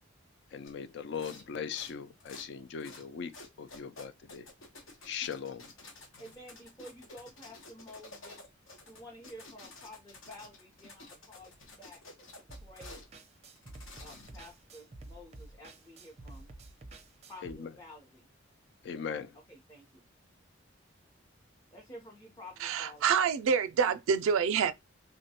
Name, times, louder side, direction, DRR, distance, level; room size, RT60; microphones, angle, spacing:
voice 1, 0.5-4.5 5.1-5.7 17.4-17.7 18.8-19.3, left 6 dB, 60° left, 0.3 m, -39 dB
sound 1, 0.6-0.8 1.1-1.5 1.7-2.5 2.8-3.1 3.3-13.1 13.6-14.5, left 2 dB, 85° left, 0.9 m, -51 dB
voice 2, 5.8-8.5 8.9-12.0 12.4-13.1 14.0-16.5 17.3-18.3 19.3-20.0 21.7-23.0, left 1 dB, 15° left, 0.7 m, -51 dB
sound 2, 12.5-17.5, right 2 dB, 30° right, 0.5 m, -50 dB
voice 3, 22.6-24.7, right 6 dB, 85° right, 0.3 m, -27 dB
3.4 x 2.2 x 2.8 m
head